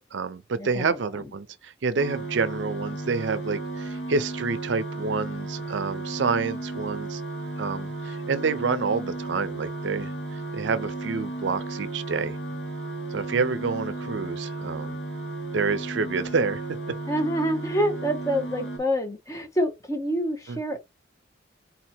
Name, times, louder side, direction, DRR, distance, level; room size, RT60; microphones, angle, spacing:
voice 1, 0.0-7.2 7.6-12.4 13.1-15.0 15.5-16.6 20.5-20.6, right 4 dB, 70° right, 0.5 m, -28 dB
sound 1, 2.0-18.8, right 2 dB, 70° left, 2.1 m, -34 dB
voice 2, 17.1-20.8, equal, 15° left, 0.9 m, -27 dB
4.1 x 2.8 x 4.3 m
head